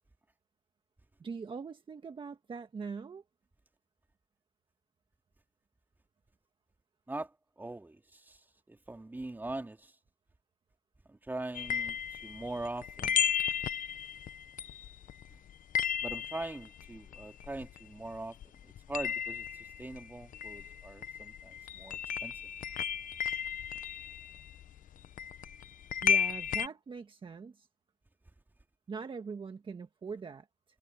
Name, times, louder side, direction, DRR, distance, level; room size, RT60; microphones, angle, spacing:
voice 1, 1.2-3.2 26.0-27.7 28.9-30.5, right 5 dB, 30° right, 1.6 m, -42 dB
voice 2, 7.6-8.4 8.7-9.9 11.1-13.3 16.0-18.4 18.9-19.5 19.8-22.4, right 2 dB, 10° right, 2.6 m, -41 dB
sound 1, 11.5-18.2 18.4-26.7, left 8 dB, 50° left, 0.9 m, -34 dB
cardioid pair, 110°, 17 cm